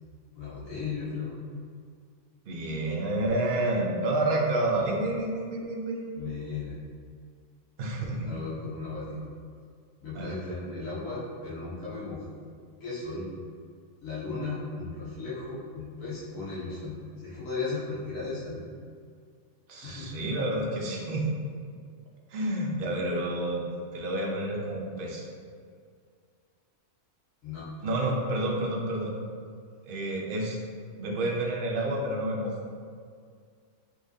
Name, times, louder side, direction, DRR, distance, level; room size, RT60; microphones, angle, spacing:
voice 1, 0.3-1.4 6.2-6.8 8.2-9.2 10.0-12.2 12.8-13.3 14.0-16.9 17.2-18.6 19.8-20.0 27.4-27.7, left 4 dB, 90° left, -10 dB, 1.6 m, -36 dB
voice 2, 2.5-6.1 7.8-8.3 10.2-10.3 19.7-21.3 22.3-23.6 23.9-25.3 27.8-29.1 29.9-30.6 31.0-32.5, right 1 dB, 50° right, -1 dB, 0.8 m, -29 dB
5.5 x 3.0 x 2.7 m, 2.1 s
omnidirectional pair, 1.4 m